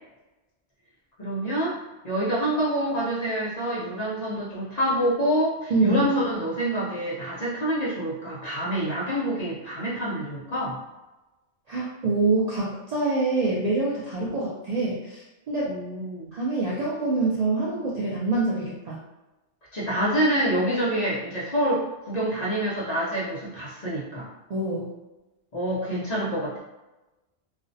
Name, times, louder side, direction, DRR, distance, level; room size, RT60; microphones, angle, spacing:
voice 1, 1.2-1.8 2.0-10.8 15.6-16.3 19.7-24.3 25.5-26.6, right 1 dB, 45° left, -7 dB, 0.6 m, -27 dB
voice 2, 5.7-6.0 11.7-15.7 16.3-19.0 24.5-24.9, right 3 dB, 60° right, -6 dB, 0.4 m, -25 dB
2.5 x 2.0 x 2.5 m, 1.0 s
omnidirectional pair, 1.1 m